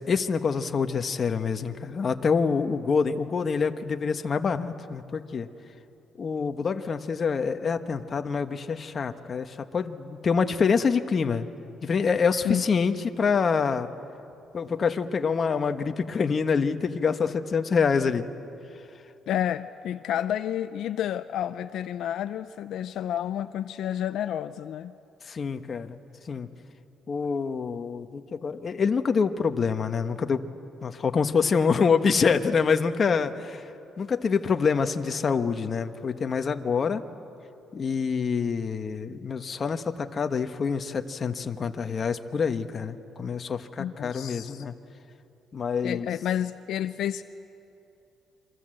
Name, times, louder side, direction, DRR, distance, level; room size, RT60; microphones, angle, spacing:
voice 1, 0.1-5.5 6.2-11.5 11.8-13.9 14.5-18.3 25.3-26.0 26.3-26.5 27.1-30.4 30.8-33.7 34.0-37.0 37.7-44.7 45.5-46.1, left 5 dB, 40° left, 7 dB, 1.2 m, -26 dB
voice 2, 19.3-25.0 43.8-44.6 45.8-47.2, left 10 dB, 75° left, 11 dB, 0.6 m, -30 dB
28.5 x 25.0 x 7.8 m, 2.8 s
cardioid pair, 115°, 0 cm